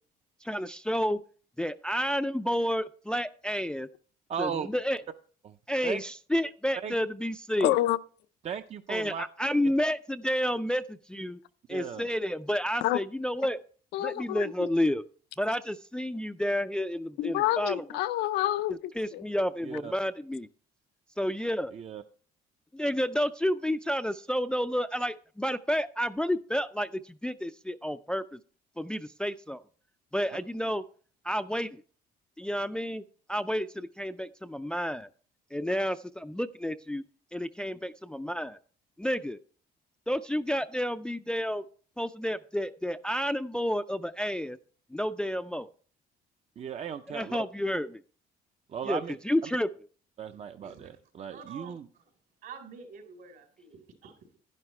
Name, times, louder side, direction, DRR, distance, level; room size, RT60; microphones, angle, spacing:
voice 1, 0.5-1.2 1.6-3.9 4.4-5.0 5.7-7.7 8.9-11.4 11.7-13.6 14.0-15.0 15.4-17.8 19.0-20.5 21.2-21.7 22.7-28.4 28.8-29.6 30.1-30.8 31.2-31.8 32.4-33.0 33.3-35.1 35.5-37.0 37.3-38.6 39.0-39.4 40.1-41.6 42.0-44.6 44.9-45.7 47.1-48.0 48.8-49.0 49.2-49.7, equal, 5° left, 0.4 m, -30 dB
voice 2, 4.3-4.7 5.4-5.5 5.8-6.0 6.8-6.9 8.4-9.2 9.6-9.7 11.7-12.1 19.6-19.9 21.7-22.0 46.6-47.4 48.7-49.2 50.2-51.9, right 7 dB, 40° right, 0.6 m, -36 dB
voice 3, 7.6-8.0 12.8-13.0 13.9-14.7 17.2-19.2, left 15 dB, 85° left, 0.5 m, -28 dB
voice 4, 51.3-51.7 52.4-54.1, right 5 dB, 70° right, 4.2 m, -47 dB
11.0 x 11.0 x 3.2 m
cardioid pair, 110°, 17 cm